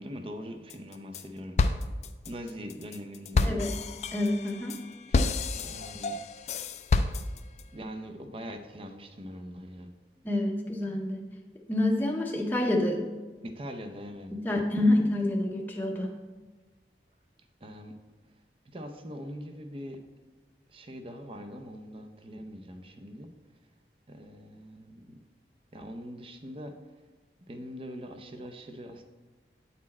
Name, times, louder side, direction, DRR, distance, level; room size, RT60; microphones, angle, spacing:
voice 1, 0.0-1.6 2.3-3.6 5.1-5.3 5.6-6.2 7.7-9.9 13.4-14.3 17.6-18.0 18.7-20.0 20.7-23.3 24.1-25.2 25.7-26.8 27.5-29.0, equal, 30° right, 6 dB, 0.6 m, -42 dB
sound 1, 0.7-1.2 1.6-7.6, left 3 dB, 40° left, 0.3 m, -29 dB
voice 2, 3.4-3.7 4.1-4.8 10.2-11.2 11.7-13.0 14.3-16.1, left 1 dB, 10° left, 0 dB, 0.7 m, -27 dB
8.4 x 4.2 x 4.3 m, 1.3 s
head